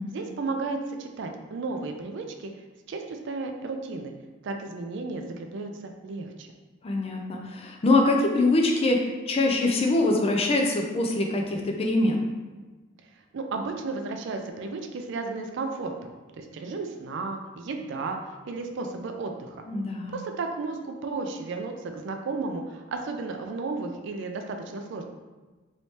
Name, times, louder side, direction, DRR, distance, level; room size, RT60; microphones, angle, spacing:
voice 1, 0.1-2.5 2.9-4.1 4.4-6.5 13.3-18.2 18.5-19.6 20.1-25.1, right 3 dB, 60° right, 4 dB, 0.4 m, -33 dB
voice 2, 6.8-12.2 19.7-20.2, left 2 dB, 30° left, 2 dB, 0.4 m, -24 dB
3.1 x 3.1 x 2.8 m, 1.3 s
head